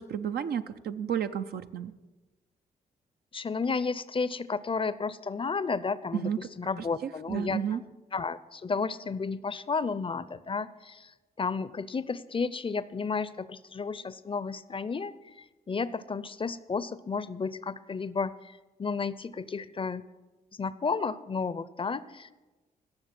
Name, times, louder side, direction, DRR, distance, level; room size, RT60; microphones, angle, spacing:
voice 1, 0.0-1.9 6.1-6.4 7.0-7.8, right 8 dB, 70° right, 9 dB, 0.6 m, -32 dB
voice 2, 3.3-7.6 8.1-11.1 11.4-20.0 20.5-22.3, left 4 dB, 30° left, 17 dB, 0.6 m, -32 dB
17.0 x 6.8 x 6.0 m, 1.2 s
supercardioid pair, 55°, 17 cm